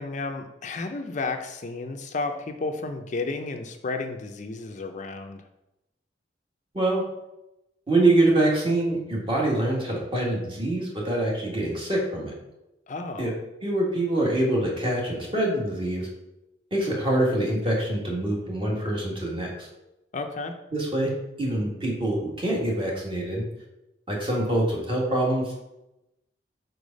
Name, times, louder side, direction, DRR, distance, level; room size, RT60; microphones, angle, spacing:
voice 1, 0.0-5.4 12.9-13.3 20.1-20.5, left 3 dB, 45° left, 5 dB, 0.5 m, -32 dB
voice 2, 7.9-12.3 13.2-13.3 13.6-16.1 16.7-19.7 20.7-21.1 21.4-23.4 24.1-25.5, right 1 dB, 30° right, -3 dB, 1.7 m, -25 dB
4.9 x 4.6 x 5.2 m, 0.93 s
head